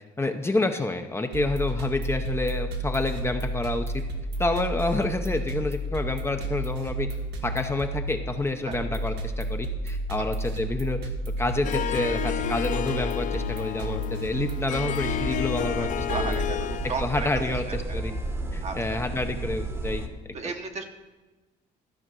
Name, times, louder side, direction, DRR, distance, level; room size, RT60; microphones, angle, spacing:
voice 1, 0.2-3.8 4.4-7.1 7.4-11.0 11.4-16.4 17.0-18.1 18.5-20.0, left 2 dB, 15° left, 6 dB, 0.7 m, -28 dB
sound 1, 1.3-16.5, right 1 dB, 80° right, 1.3 m, -32 dB
Harp, 11.6-17.1, left 11 dB, 50° left, 0.4 m, -31 dB
sound 2, 15.0-20.1, right 2 dB, 15° right, 1.1 m, -32 dB
voice 2, 15.8-18.0 18.6-19.0 20.3-20.8, right 4 dB, 40° right, 4 dB, 1.1 m, -35 dB
13.0 x 5.3 x 6.2 m, 1.2 s
cardioid pair, 110°, 17 cm